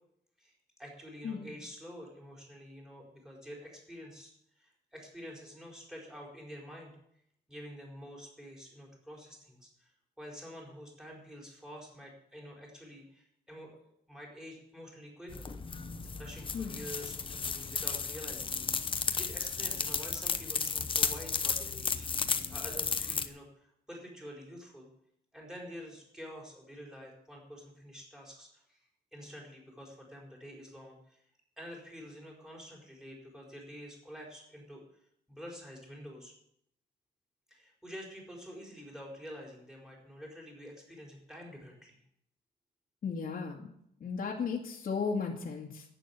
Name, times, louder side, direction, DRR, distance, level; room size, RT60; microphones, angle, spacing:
voice 1, 0.4-6.9 7.5-15.5 16.2-18.9 19.2-22.1 22.5-24.9 25.3-28.8 29.1-31.2 31.6-34.8 35.3-36.3 37.5-42.0, equal, 5° right, -1 dB, 4.7 m, -48 dB
sound 1, 15.3-23.3, left 5 dB, 30° left, 0.9 m, -34 dB
voice 2, 43.0-43.6 44.0-45.8, left 5 dB, 55° left, -2 dB, 2.0 m, -35 dB
11.0 x 9.1 x 8.3 m, 0.71 s
wide cardioid pair, 150°, 18 cm